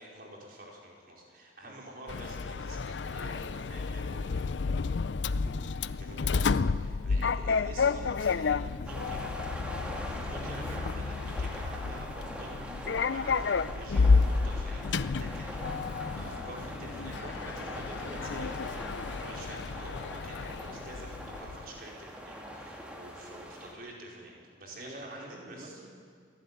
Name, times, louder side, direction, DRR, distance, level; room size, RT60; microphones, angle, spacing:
voice 1, 0.0-4.4 6.0-9.3 10.1-15.6 16.1-18.7 19.0-25.8, right 1 dB, 55° right, -2 dB, 4.8 m, -48 dB
Sliding door, 2.1-21.7, left 4 dB, 80° left, 0.5 m, -31 dB
voice 2, 5.4-5.8 24.8-25.9, right 1 dB, 35° right, 1 dB, 2.4 m, -47 dB
sound 1, 8.9-23.7, equal, 5° right, 2.2 m, -42 dB
27.5 x 11.5 x 9.4 m, 2.1 s
head